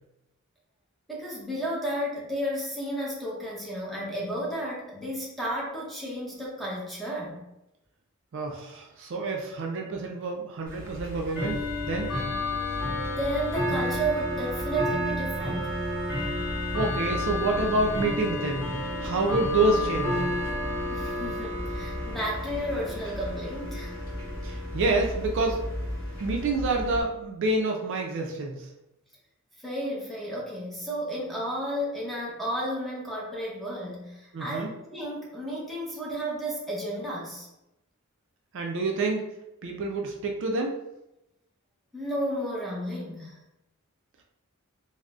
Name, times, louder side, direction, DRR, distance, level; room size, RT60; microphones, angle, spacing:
voice 1, 1.1-7.4 13.1-15.8 20.9-24.0 29.6-37.5 41.9-43.4, right 1 dB, ahead, -5 dB, 0.7 m, -32 dB
voice 2, 8.3-12.1 16.7-18.6 19.0-20.2 24.4-25.6 26.2-28.7 34.3-34.7 38.5-39.2 39.6-40.7, right 2 dB, 60° right, 2 dB, 0.4 m, -28 dB
Bell / Tick-tock, 10.7-27.0, left 1 dB, 20° left, 1.2 m, -31 dB
3.7 x 2.0 x 2.3 m, 0.90 s
head